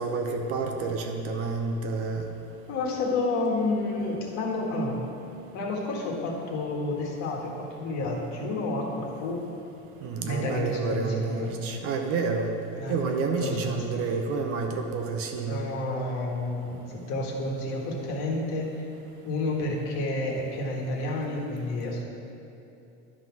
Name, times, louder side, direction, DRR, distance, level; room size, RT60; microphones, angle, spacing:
voice 1, 0.0-2.3 10.0-12.5 12.9-15.6, right 4 dB, 40° right, 4 dB, 0.7 m, -29 dB
voice 2, 2.7-5.0 5.5-9.4 10.2-11.5 12.8-13.0 13.4-14.1 15.4-18.9 19.2-22.0, left 2 dB, 55° left, -1 dB, 1.6 m, -30 dB
11.0 x 3.8 x 6.1 m, 2.8 s
supercardioid pair, 145°, 35 cm